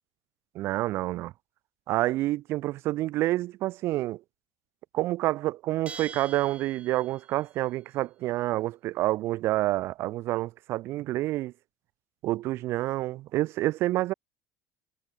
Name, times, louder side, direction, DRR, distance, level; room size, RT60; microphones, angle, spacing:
voice 1, 0.5-1.3 1.9-4.2 4.9-11.5 12.2-14.1, right 16 dB, 55° right, 0.7 m, -28 dB
Bell, 5.9-7.4, right 5 dB, 25° right, 3.3 m, -44 dB
supercardioid pair, 105°, 5 cm